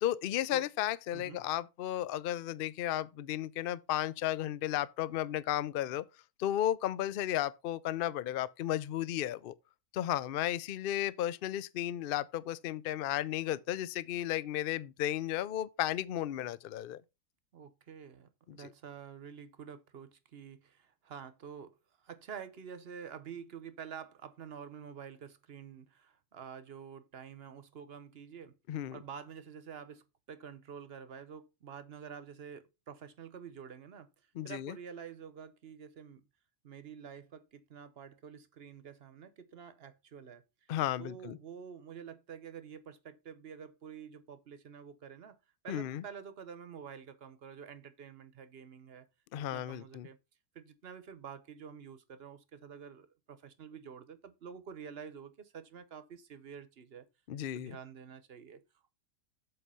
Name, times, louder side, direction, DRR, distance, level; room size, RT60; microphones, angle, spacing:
voice 1, 0.0-6.0 6.4-9.5 9.9-17.0 18.6-18.7 28.7-29.0 34.4-34.7 40.7-41.4 45.7-46.0 49.3-50.1 57.3-57.7, left 12 dB, 85° left, 0.4 m, -34 dB
voice 2, 1.1-1.5 17.5-28.5 28.9-34.1 34.4-36.2 36.6-40.7 41.0-45.4 45.6-49.1 49.5-50.2 50.5-57.1 57.4-58.6, right 7 dB, 50° right, 1.0 m, -48 dB
7.8 x 4.9 x 5.5 m
omnidirectional pair, 1.6 m